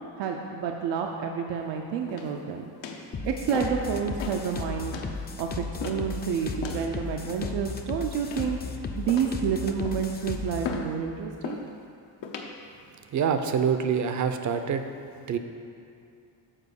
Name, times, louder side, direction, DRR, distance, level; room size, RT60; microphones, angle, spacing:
voice 1, 0.0-2.6 3.2-4.9 5.4-8.6 9.0-11.6, right 7 dB, 80° right, 2 dB, 0.7 m, -29 dB
sound 1, 2.1-2.4 2.8-3.1 3.5-3.9 4.2-4.4 4.9-5.1 5.8-6.1 6.6-6.9 7.4-7.8 8.3-8.7 9.1-9.4 9.8-10.1 10.6-10.9 11.4-11.7 12.2-12.5 13.1-13.5, left 5 dB, 85° left, 0.9 m, -36 dB
sound 2, 3.1-10.7, left 4 dB, 25° left, 0.5 m, -35 dB
voice 2, 13.1-14.9 15.3-15.4, right 7 dB, 45° right, 8 dB, 0.5 m, -25 dB
7.5 x 4.5 x 6.5 m, 2.6 s
cardioid pair, 125°, 43 cm